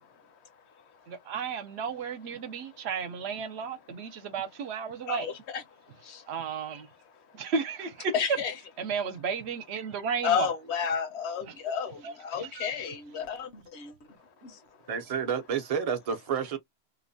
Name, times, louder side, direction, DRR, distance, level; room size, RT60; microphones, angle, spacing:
voice 1, 1.1-5.3 6.3-6.9 7.3-8.1 8.8-10.5 11.5-11.6 12.0-12.7, right 5 dB, 75° right, 0.9 m, -33 dB
voice 2, 5.1-5.6 6.0-6.2 8.1-8.5 10.2-13.9 14.4-14.6, left 7 dB, 75° left, 1.0 m, -31 dB
voice 3, 14.9-16.6, right 7 dB, 40° right, 0.6 m, -30 dB
2.8 x 2.1 x 2.6 m
omnidirectional pair, 1.1 m